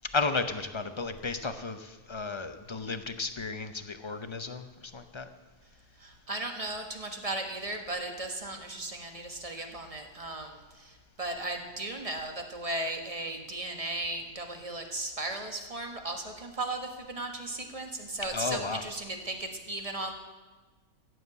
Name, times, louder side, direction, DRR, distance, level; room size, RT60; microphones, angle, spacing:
voice 1, 0.1-5.3 9.6-9.7 18.3-18.8, left 4 dB, 30° left, 9 dB, 0.5 m, -33 dB
voice 2, 6.0-20.1, right 2 dB, 25° right, 4 dB, 1.5 m, -36 dB
15.0 x 7.9 x 8.2 m, 1.3 s
omnidirectional pair, 1.5 m